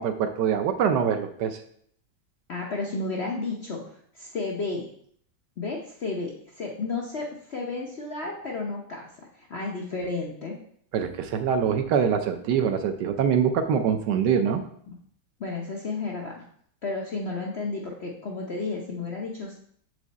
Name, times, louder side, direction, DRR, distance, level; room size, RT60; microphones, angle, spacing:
voice 1, 0.0-1.6 10.9-14.6, right 7 dB, 70° right, 8 dB, 1.1 m, -24 dB
voice 2, 2.5-4.8 5.6-9.1 9.4-10.5 15.4-16.4 16.8-19.5, left 3 dB, 75° left, -1 dB, 0.6 m, -32 dB
7.5 x 4.8 x 4.0 m, 0.63 s
omnidirectional pair, 2.3 m